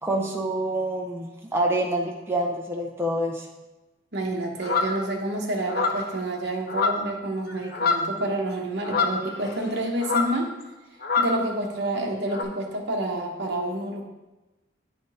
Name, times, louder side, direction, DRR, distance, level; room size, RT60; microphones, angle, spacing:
voice 1, 0.0-3.5, right 1 dB, 10° right, -1 dB, 0.6 m, -27 dB
voice 2, 4.1-10.5 11.2-14.0, right 1 dB, 55° right, 0 dB, 1.0 m, -28 dB
sound 1, 4.6-5.0 5.7-6.1 6.7-7.2 7.5-8.2 8.8-9.7 10.0-10.4 11.0-11.4 12.3-12.4, left 4 dB, 50° left, 0.6 m, -25 dB
9.3 x 3.5 x 4.0 m, 1.1 s
head